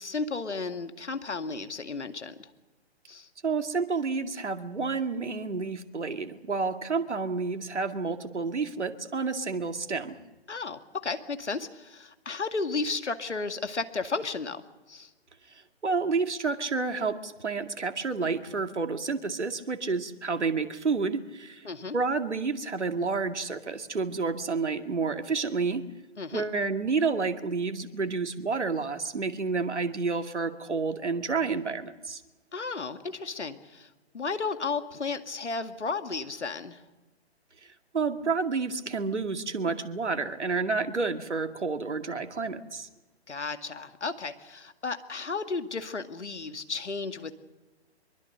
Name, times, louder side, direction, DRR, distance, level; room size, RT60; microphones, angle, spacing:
voice 1, 0.0-2.5 3.1-3.3 10.5-15.1 21.6-22.0 26.2-26.5 32.5-33.9 34.1-36.8 43.3-47.3, left 4 dB, 80° left, 8 dB, 2.2 m, -33 dB
voice 2, 3.4-10.1 15.8-21.6 21.9-25.8 26.3-32.2 37.9-42.9, right 4 dB, 80° right, 7 dB, 2.3 m, -30 dB
24.5 x 22.5 x 6.7 m, 1.2 s
figure-of-eight pair, 140°, 34 cm